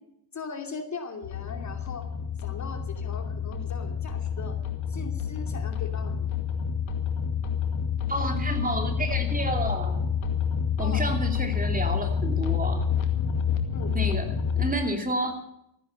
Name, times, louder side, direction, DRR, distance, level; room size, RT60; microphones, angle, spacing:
voice 1, 0.3-2.1 2.4-4.6 4.9-6.3 10.8-11.0 13.7-14.0, left 4 dB, 40° left, 5 dB, 2.7 m, -39 dB
sound 1, 1.2-14.7, left 7 dB, 85° left, 2.2 m, -28 dB
voice 2, 8.1-10.0 10.8-12.9 13.9-15.3, right 1 dB, 20° right, 5 dB, 2.8 m, -30 dB
15.0 x 10.0 x 7.6 m, 0.81 s
cardioid pair, 85°, 45 cm